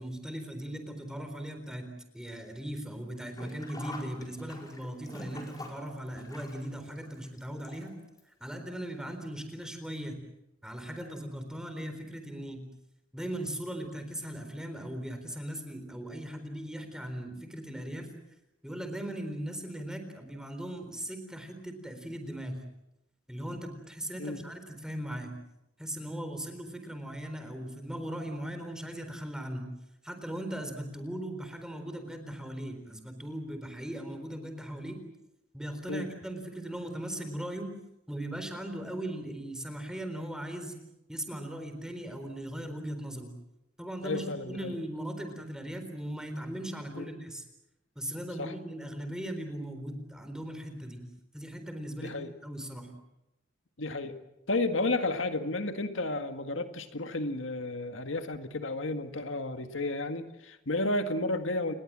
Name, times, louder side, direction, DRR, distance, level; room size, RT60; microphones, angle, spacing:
voice 1, 0.0-7.9 8.4-10.2 10.6-12.7 13.1-18.1 18.6-22.6 23.3-25.3 25.8-29.7 30.0-35.0 35.5-37.7 38.1-40.7 41.1-43.3 43.8-47.4 48.0-51.1 51.3-52.2 52.4-52.9, right 1 dB, 5° right, 6 dB, 4.1 m, -38 dB
Sink (filling or washing), 3.3-8.2 8.5-8.6 9.6-9.7 10.0-10.1, left 2 dB, 20° left, 4.9 m, -46 dB
voice 2, 44.0-44.8 46.9-47.1 48.4-48.5 52.0-52.3 53.8-54.2 54.5-61.7, left 2 dB, 80° left, 7 dB, 1.8 m, -32 dB
29.5 x 21.0 x 7.5 m, 0.90 s
head